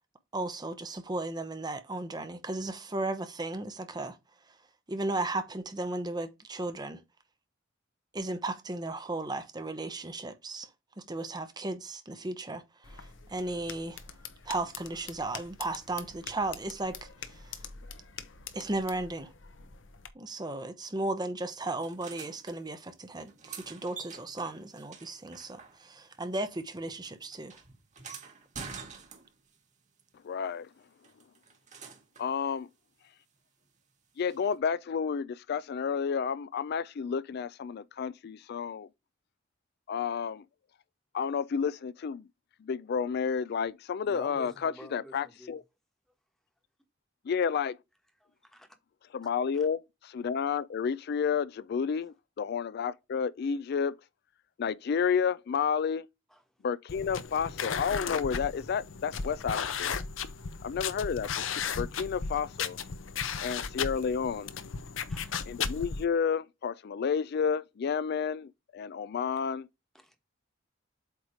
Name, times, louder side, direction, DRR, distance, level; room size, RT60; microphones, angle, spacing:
voice 1, 0.3-4.2 4.9-7.0 8.1-10.7 11.1-14.0 14.5-17.5 18.5-19.3 20.1-27.6, right 2 dB, 20° right, 0.8 m, -35 dB
sound 1, 12.8-20.1, left 7 dB, 70° left, 1.0 m, -46 dB
sound 2, 21.8-22.6 23.2-26.1 26.4-29.6 31.0-32.3 34.3-34.4, right 5 dB, 40° right, 1.7 m, -47 dB
voice 2, 30.2-30.7 32.2-32.7 34.2-38.9 39.9-40.4 41.1-42.3 42.6-45.6 47.3-47.8 49.1-53.9 54.6-56.1 56.6-60.0 60.6-62.8 63.4-64.5 65.5-69.7, left 6 dB, 55° left, 0.4 m, -31 dB
voice 3, 44.0-45.6 48.4-48.7 49.5-49.6 56.3-56.4 62.3-62.4 65.1-65.4 69.9-70.2, left 1 dB, ahead, 1.2 m, -49 dB
sound 3, 56.9-66.0, left 6 dB, 90° left, 0.7 m, -35 dB
8.1 x 3.1 x 4.9 m
head